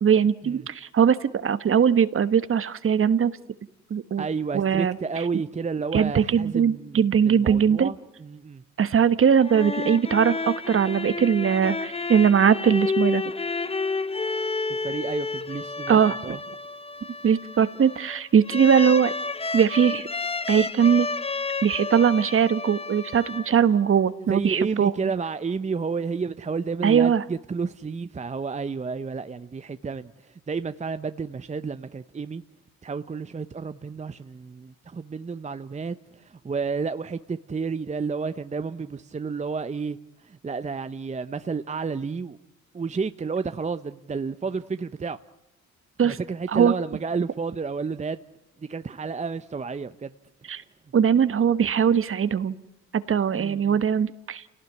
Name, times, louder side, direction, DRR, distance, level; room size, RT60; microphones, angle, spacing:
voice 1, 0.0-3.3 3.9-4.3 4.5-5.0 5.9-7.9 8.8-13.2 15.9-16.4 17.2-19.1 19.5-20.1 20.5-21.1 21.6-24.9 26.8-27.2 46.0-46.2 46.5-46.7 50.5-50.6 50.9-52.6 53.1-54.4, right 7 dB, 45° right, 1.3 m, -20 dB
voice 2, 4.2-8.6 14.8-16.4 24.3-32.4 32.8-40.0 40.2-42.4 42.7-45.2 46.0-48.2 48.6-50.1 53.3-53.8, right 5 dB, 25° right, 0.8 m, -31 dB
sound 1, 9.2-23.9, left 3 dB, 20° left, 0.9 m, -31 dB
29.0 x 18.0 x 9.7 m
cardioid pair, 90°, 30 cm